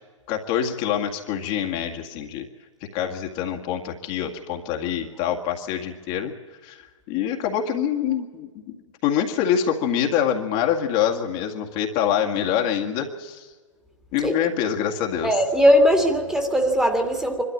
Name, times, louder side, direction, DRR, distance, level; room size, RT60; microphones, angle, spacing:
voice 1, 0.3-2.4 2.9-6.3 6.6-8.8 9.0-13.5 14.1-15.4, left 9 dB, 40° left, 2 dB, 2.1 m, -25 dB
voice 2, 15.2-17.4, equal, 5° right, 4 dB, 2.2 m, -19 dB
24.5 x 13.0 x 8.6 m, 1.4 s
hypercardioid pair, 115°, 16 cm